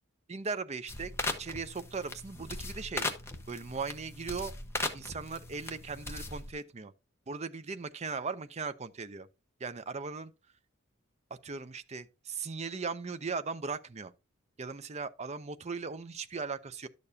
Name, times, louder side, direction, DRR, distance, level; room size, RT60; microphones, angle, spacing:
voice 1, 0.3-1.1 1.4-3.1 3.5-4.5 4.9-6.9 7.3-9.3 9.6-10.3 11.4-14.1 14.6-16.9, right 4 dB, 30° right, 0.5 m, -38 dB
sound 1, 0.9-6.5, left 2 dB, 10° left, 1.1 m, -38 dB
12.0 x 6.7 x 2.7 m
head